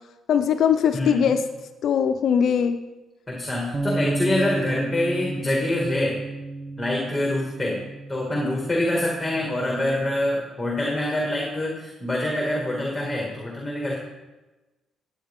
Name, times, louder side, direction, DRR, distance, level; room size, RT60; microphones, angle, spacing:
voice 1, 0.3-1.4 1.8-2.8, left 8 dB, 65° left, 9 dB, 0.6 m, -20 dB
voice 2, 0.9-1.3 3.3-6.2 6.8-13.9, left 1 dB, 10° left, -2 dB, 2.3 m, -25 dB
sound 1, 3.7-10.0, right 2 dB, 20° right, 0.7 m, -32 dB
12.5 x 8.8 x 3.7 m, 1.1 s
cardioid pair, 90°, 0 cm